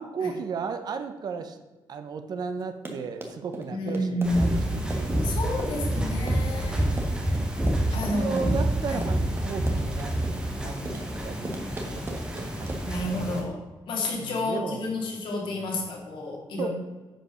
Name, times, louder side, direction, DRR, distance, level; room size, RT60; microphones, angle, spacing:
voice 1, 0.0-1.6 1.9-6.0 6.7-7.2 7.9-10.1 10.6-12.8 14.2-15.1 15.5-15.9 16.6-16.7, right 5 dB, 55° right, 8 dB, 0.9 m, -35 dB
Run, 2.6-13.0, right 2 dB, 30° right, 1.4 m, -39 dB
voice 2, 3.7-4.8 5.2-6.8 7.9-8.5 8.9-9.0 12.8-16.7, left 1 dB, 80° left, -1 dB, 2.9 m, -30 dB
sound 1, 4.2-13.4, right 1 dB, 10° right, 1.4 m, -28 dB
10.0 x 5.3 x 6.5 m, 1.2 s
wide cardioid pair, 175°, 8 cm